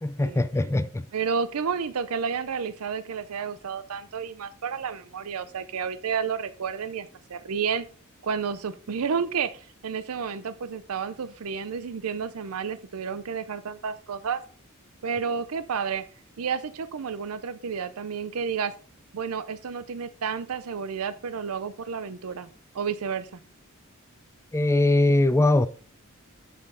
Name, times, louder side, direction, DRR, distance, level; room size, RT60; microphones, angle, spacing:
voice 1, 0.0-1.1 24.5-25.7, left 2 dB, 15° left, 0.4 m, -21 dB
voice 2, 1.1-7.9 8.2-14.4 15.0-16.0 16.4-18.7 19.1-22.5 22.7-23.4, right 6 dB, 90° right, 0.5 m, -31 dB
8.2 x 7.5 x 3.8 m
head